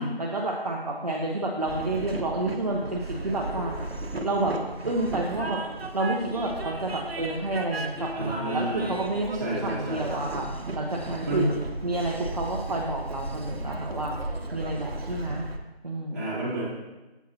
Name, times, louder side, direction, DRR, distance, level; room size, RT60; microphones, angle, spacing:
voice 1, 0.2-3.7 4.2-4.6 4.8-5.6 5.9-10.5 10.7-11.5 11.8-14.2 14.5-15.5 15.8-16.3, right 2 dB, 40° right, -1 dB, 1.0 m, -29 dB
Train, 1.7-15.6, right 2 dB, 70° right, 1.2 m, -35 dB
voice 2, 8.1-8.9 9.3-10.1 11.2-11.5 16.1-16.7, right 2 dB, 15° right, -8 dB, 2.4 m, -30 dB
10.0 x 8.3 x 3.0 m, 1.1 s
figure-of-eight pair, 165°, 31 cm